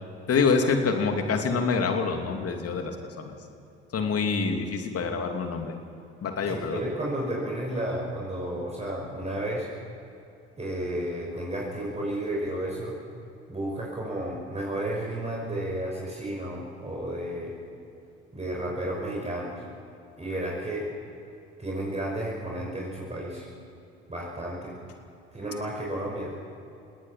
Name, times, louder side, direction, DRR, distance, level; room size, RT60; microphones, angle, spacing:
voice 1, 0.3-3.3 3.9-5.8 6.2-6.8, left 5 dB, 45° left, 4 dB, 2.9 m, -26 dB
voice 2, 6.5-9.7 10.6-13.0 13.5-17.5 18.3-19.6 20.2-20.9 21.6-23.5 24.1-24.8 25.3-26.4, right 1 dB, 20° right, -3 dB, 5.5 m, -32 dB
29.5 x 18.5 x 5.8 m, 2.7 s
figure-of-eight pair, 50°, 34 cm